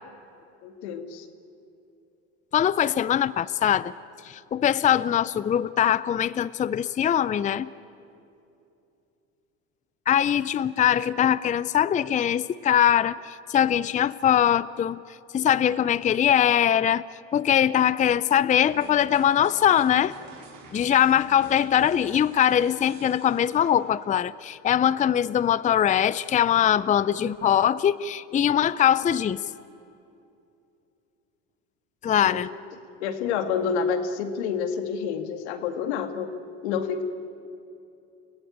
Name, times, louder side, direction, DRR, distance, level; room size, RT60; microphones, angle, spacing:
voice 1, 0.6-1.3 32.3-32.4 33.0-36.3 36.6-37.0, left 6 dB, 85° left, 8 dB, 2.2 m, -28 dB
voice 2, 2.5-3.9 4.2-7.7 10.1-15.0 15.3-17.0 17.3-20.1 20.7-29.4 32.0-32.5, left 10 dB, 25° left, 17 dB, 0.5 m, -22 dB
sound 1, 18.5-24.2, right 3 dB, 70° right, 4.7 m, -47 dB
29.5 x 17.5 x 8.8 m, 2.7 s
supercardioid pair, 95°, 33 cm